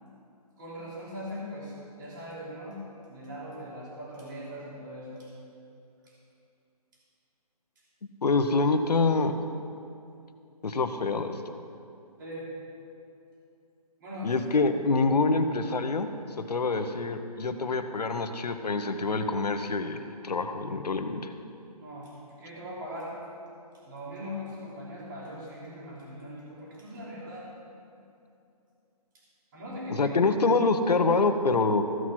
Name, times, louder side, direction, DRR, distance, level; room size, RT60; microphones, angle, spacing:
voice 1, 0.6-2.8 3.1-5.3 6.0-6.1 12.2-12.5 14.0-14.3 21.7-23.2 23.8-27.5 29.1-29.2 29.5-30.4, equal, 30° right, -6 dB, 3.2 m, -40 dB
voice 2, 8.2-9.5 10.6-11.5 14.2-16.1 16.4-21.3 29.9-31.8, left 3 dB, 85° left, 8 dB, 1.0 m, -26 dB
14.5 x 6.3 x 5.9 m, 2.6 s
hypercardioid pair, 165°, 20 cm